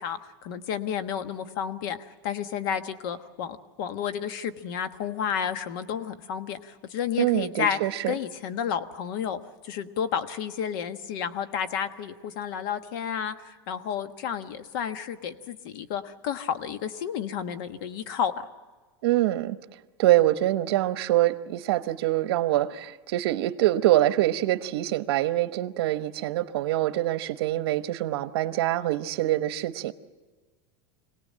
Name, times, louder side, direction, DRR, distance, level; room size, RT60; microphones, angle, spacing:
voice 1, 0.0-7.8 8.1-9.4 9.6-18.5, left 8 dB, 60° left, 10 dB, 1.4 m, -31 dB
voice 2, 7.2-8.1 19.0-19.6 20.0-29.9, right 15 dB, 70° right, 11 dB, 1.1 m, -25 dB
26.0 x 18.0 x 7.6 m, 1.3 s
supercardioid pair, 165°, 13 cm